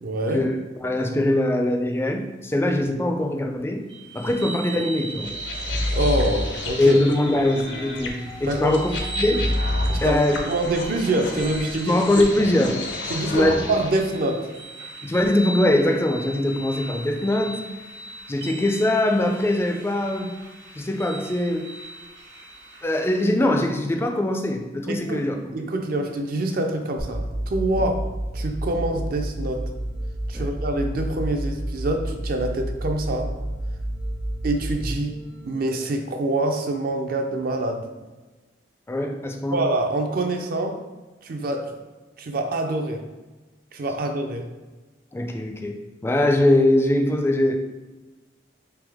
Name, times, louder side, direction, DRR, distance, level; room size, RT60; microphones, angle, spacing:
voice 1, 0.0-0.5 5.9-7.0 8.5-8.8 10.0-10.2 10.4-12.0 13.1-14.5 24.9-25.2 25.5-28.0 28.3-29.7 30.3-33.3 34.4-35.2 35.5-37.9 39.5-40.8 41.2-41.8 42.2-43.0 43.7-44.5, right 1 dB, 55° right, 4 dB, 0.5 m, -25 dB
voice 2, 0.8-3.8 4.1-5.3 6.8-8.9 9.2-9.5 10.0-10.4 11.9-12.8 13.3-13.7 15.0-17.6 18.3-20.3 20.8-21.7 22.8-25.4 30.3-30.5 38.9-39.6 45.1-47.6, left 1 dB, 15° left, 4 dB, 0.3 m, -22 dB
sound 1, 3.9-23.3, right 2 dB, 85° right, 1.1 m, -38 dB
sound 2, 5.2-14.0, left 1 dB, 80° left, 0.6 m, -29 dB
sound 3, 27.0-36.0, right 1 dB, 70° right, 1.2 m, -30 dB
3.5 x 3.2 x 3.4 m, 1.2 s
head